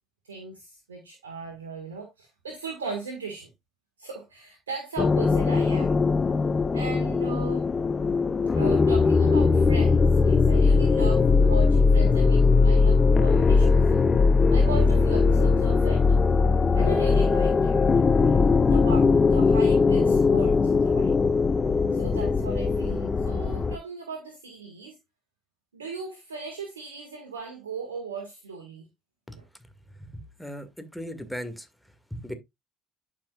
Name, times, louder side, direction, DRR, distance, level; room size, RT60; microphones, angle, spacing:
voice 1, 0.2-3.5 4.0-6.0 6.7-7.7 8.5-14.0 14.5-16.0 16.8-17.8 18.1-21.1 21.9-25.0 25.7-28.8 29.4-29.5, right 4 dB, 90° right, 1.6 m, -38 dB
sound 1, 5.0-23.8, left 4 dB, 30° left, 0.8 m, -20 dB
voice 2, 30.0-30.7 30.9-31.7 32.1-32.3, equal, ahead, 2.0 m, -37 dB
11.5 x 5.5 x 2.4 m
hypercardioid pair, 60°, 0 cm